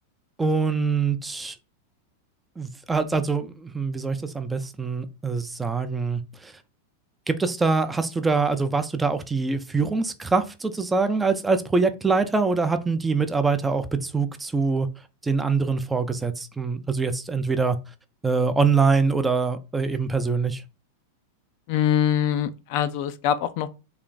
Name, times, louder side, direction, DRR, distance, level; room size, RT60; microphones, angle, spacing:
voice 1, 0.4-1.6 2.6-6.5 7.3-14.9 15.2-17.8 18.2-20.6, right 4 dB, 10° right, 0.4 m, -24 dB
voice 2, 21.7-23.7, left 10 dB, 55° left, 0.3 m, -23 dB
3.3 x 2.4 x 3.9 m
supercardioid pair, 130°, 0 cm